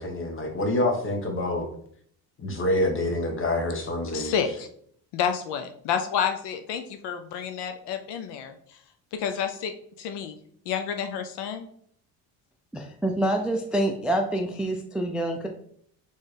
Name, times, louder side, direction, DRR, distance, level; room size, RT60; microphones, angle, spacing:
voice 1, 0.0-1.6 2.4-4.3, left 1 dB, 30° left, 2 dB, 1.2 m, -26 dB
voice 2, 4.1-4.7 5.1-8.8 9.1-10.4 10.7-11.7, left 7 dB, 65° left, 7 dB, 0.6 m, -30 dB
voice 3, 12.7-15.5, right 1 dB, ahead, 3 dB, 0.4 m, -26 dB
4.2 x 3.5 x 3.3 m, 0.64 s
supercardioid pair, 90°, 44 cm